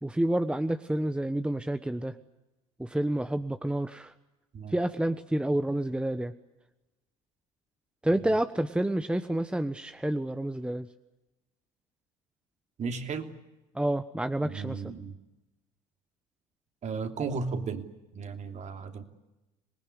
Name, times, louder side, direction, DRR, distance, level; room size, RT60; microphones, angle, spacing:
voice 1, 0.0-2.2 2.8-4.1 4.7-6.3 8.0-10.9 13.7-14.8, right 1 dB, 5° right, 10 dB, 1.2 m, -29 dB
voice 2, 12.8-13.3 14.4-15.2 16.8-19.0, right 5 dB, 40° right, 6 dB, 3.0 m, -35 dB
26.0 x 20.0 x 9.7 m, 1.0 s
hypercardioid pair, 70°, 18 cm